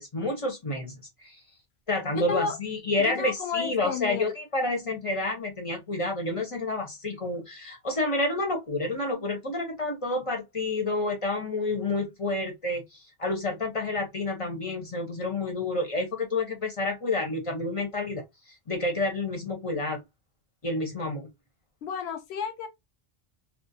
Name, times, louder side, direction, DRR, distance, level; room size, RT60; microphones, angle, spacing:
voice 1, 0.0-1.4 1.9-20.0 20.6-21.3, left 2 dB, 35° left, 0.7 m, -29 dB
voice 2, 3.0-4.3 21.8-22.7, left 6 dB, 70° left, 0.9 m, -32 dB
2.4 x 2.0 x 2.6 m
omnidirectional pair, 1.2 m